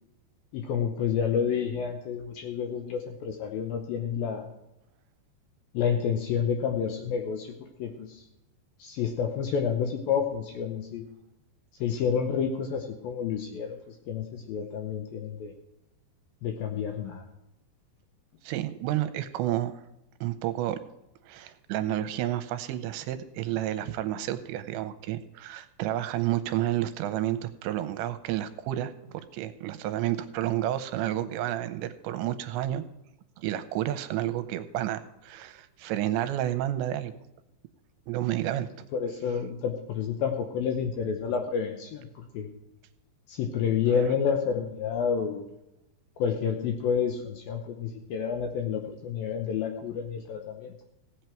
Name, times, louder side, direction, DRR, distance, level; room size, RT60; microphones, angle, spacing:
voice 1, 0.5-4.5 5.7-8.2 8.8-11.1 11.8-15.5 16.4-17.2 38.9-42.5 43.3-45.5 46.2-50.8, left 7 dB, 75° left, 4 dB, 2.2 m, -29 dB
voice 2, 18.4-19.8 20.2-20.8 21.3-28.9 29.3-32.8 33.4-37.1 38.1-38.7, right 13 dB, 85° right, 11 dB, 2.9 m, -30 dB
17.0 x 8.2 x 4.5 m, 0.89 s
omnidirectional pair, 5.2 m